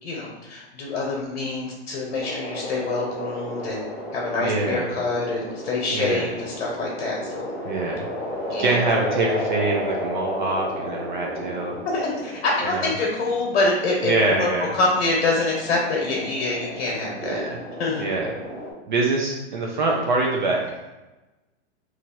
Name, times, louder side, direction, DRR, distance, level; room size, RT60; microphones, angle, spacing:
voice 1, 0.0-3.8 4.1-7.5 8.5-8.8 11.8-14.5 14.7-17.4 17.8-18.0, left 3 dB, 65° left, -3 dB, 1.0 m, -25 dB
sound 1, 2.2-18.7, equal, ahead, 0.9 m, -33 dB
voice 2, 4.4-4.9 5.9-6.3 7.6-8.1 8.6-11.7 12.7-12.9 14.0-14.7 17.2-17.6 18.0-18.3 18.9-20.6, right 2 dB, 45° right, -1 dB, 0.4 m, -24 dB
3.0 x 2.5 x 4.2 m, 1.1 s
supercardioid pair, 175°, 35 cm